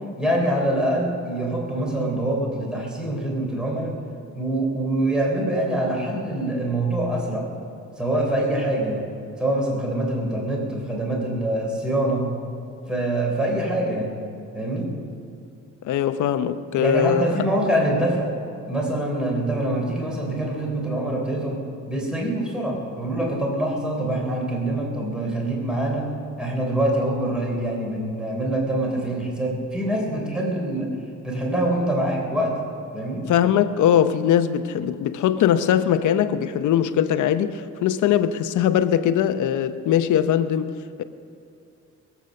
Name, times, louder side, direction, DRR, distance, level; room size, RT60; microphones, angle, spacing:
voice 1, 0.2-4.0 4.4-7.5 8.0-9.1 9.4-12.4 12.9-14.2 14.5-14.9 16.8-18.3 18.7-31.0 31.2-32.6 32.9-33.3, right 1 dB, 5° right, 3.5 m, -25 dB
voice 2, 15.8-17.3 33.2-40.7 41.0-41.1, left 9 dB, 75° left, 0.8 m, -21 dB
21.5 x 8.1 x 6.5 m
cardioid pair, 90°, 30 cm